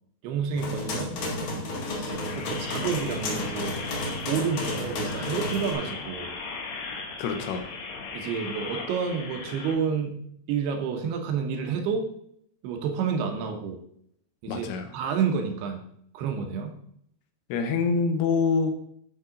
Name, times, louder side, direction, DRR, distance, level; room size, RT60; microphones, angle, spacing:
voice 1, 0.2-1.1 2.0-3.8 4.2-6.3 8.1-10.2 10.5-12.1 12.6-13.8 14.4-14.7 14.9-15.8 16.1-16.8, right 6 dB, 80° right, 4 dB, 3.0 m, -29 dB
sound 1, 0.5-5.7, left 1 dB, 55° left, 2.8 m, -32 dB
sound 2, 1.7-9.7, left 4 dB, 70° left, 2.7 m, -38 dB
voice 2, 7.2-7.7 14.5-14.9 17.5-18.7, left 5 dB, 85° left, 6 dB, 3.0 m, -25 dB
11.0 x 4.8 x 3.8 m, 0.69 s
omnidirectional pair, 4.6 m